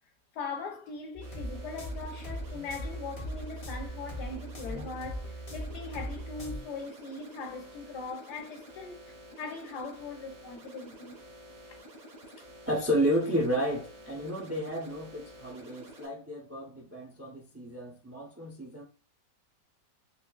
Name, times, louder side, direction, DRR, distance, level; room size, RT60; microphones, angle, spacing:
voice 1, 0.3-11.2 11.7-11.8, left 4 dB, 75° left, 1.4 m, -40 dB
sound 1, 1.1-6.6, equal, 30° left, 0.7 m, -39 dB
sound 2, 1.2-16.1, equal, 55° right, 1.7 m, -50 dB
voice 2, 12.7-18.8, equal, 20° right, 0.3 m, -31 dB
4.3 x 2.7 x 2.3 m
omnidirectional pair, 1.9 m